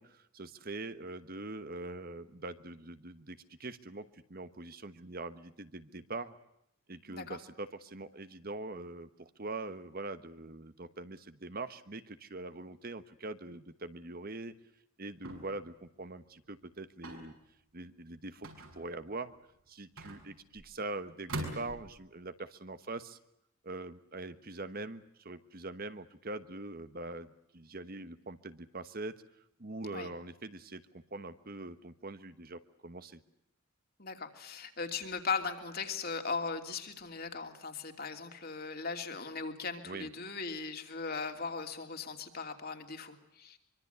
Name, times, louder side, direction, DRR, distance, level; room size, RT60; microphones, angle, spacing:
voice 1, 0.0-6.3 6.9-14.5 15.0-17.3 17.7-19.3 19.7-23.2 23.6-29.2 29.6-33.2 39.8-40.1, right 2 dB, 45° right, 11 dB, 1.2 m, -43 dB
sound 1, 15.2-15.7 17.0-17.4 18.4-19.1 20.0-20.7 21.3-22.0, right 1 dB, 80° right, 6.6 m, -42 dB
voice 2, 34.0-43.6, left 4 dB, 45° left, 5 dB, 3.0 m, -38 dB
24.5 x 24.5 x 8.1 m, 0.79 s
head